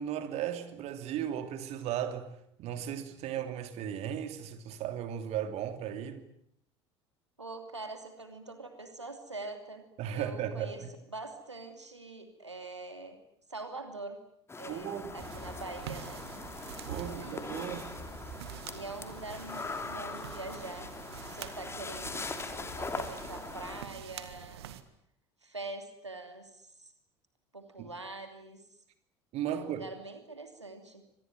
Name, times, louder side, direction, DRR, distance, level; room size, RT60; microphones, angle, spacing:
voice 1, 0.0-2.3 2.6-6.2 10.0-10.9 14.7-15.1 16.9-17.9 27.8-27.9 29.3-29.9, right 10 dB, 50° right, 3.0 m, -36 dB
voice 2, 7.4-9.9 10.1-13.2 13.5-14.2 14.6-16.2 17.0-17.8 18.7-21.0 21.2-24.8 25.4-26.9 27.5-28.6 29.5-31.1, right 3 dB, 85° right, 2.9 m, -44 dB
sound 1, 14.5-23.8, left 4 dB, 20° left, 2.9 m, -41 dB
sound 2, 15.2-24.8, right 10 dB, 65° right, 1.9 m, -46 dB
26.0 x 19.5 x 9.3 m
figure-of-eight pair, 65°, 14 cm